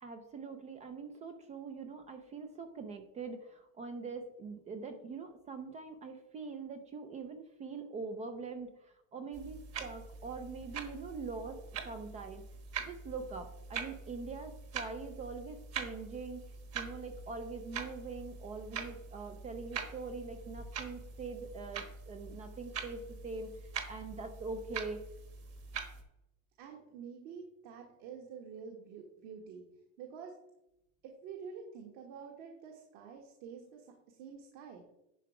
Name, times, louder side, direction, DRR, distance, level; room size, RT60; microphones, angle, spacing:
voice 1, 0.0-12.4 12.9-16.4 16.7-25.0, right 4 dB, 20° right, 7 dB, 0.4 m, -43 dB
sound 1, 9.3-26.0, right 5 dB, 35° right, 1.3 m, -44 dB
voice 2, 26.6-29.6 30.0-30.3 31.0-34.8, right 6 dB, 55° right, 1 dB, 1.6 m, -48 dB
11.0 x 4.7 x 4.7 m, 0.87 s
supercardioid pair, 150°, 42 cm